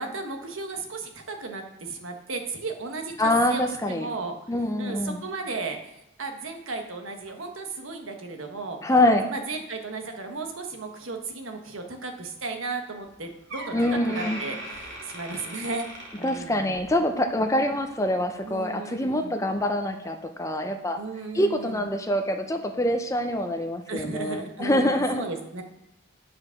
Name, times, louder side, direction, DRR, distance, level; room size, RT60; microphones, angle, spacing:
voice 1, 0.0-4.4 4.8-5.8 6.2-8.8 9.3-14.6 15.1-15.8 16.2-16.8 18.4-19.4 21.0-21.8 23.9-25.6, right 3 dB, 80° right, 4 dB, 1.3 m, -35 dB
voice 2, 3.2-4.1 4.5-5.2 8.8-9.3 13.7-14.4 16.2-21.0 21.3-25.3, left 1 dB, 15° left, 6 dB, 0.6 m, -25 dB
Door, 13.0-13.1 13.5-17.0 17.3-17.6 18.3-18.4, right 1 dB, 60° right, 2.5 m, -39 dB
9.6 x 4.9 x 5.8 m, 0.86 s
head